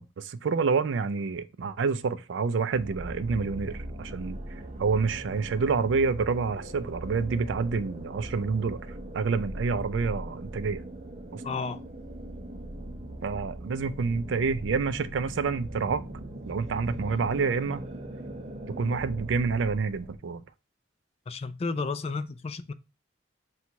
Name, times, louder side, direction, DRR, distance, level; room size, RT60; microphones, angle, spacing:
voice 1, 0.0-4.4 4.8-8.8 9.1-10.8 11.3-11.4 13.2-16.0 16.5-17.9 18.7-20.4, right 5 dB, 85° right, 0.4 m, -28 dB
sound 1, 2.7-20.2, right 1 dB, 35° right, 0.5 m, -40 dB
voice 2, 11.4-11.8 21.3-22.7, left 4 dB, 35° left, 0.3 m, -32 dB
4.5 x 2.3 x 3.9 m
head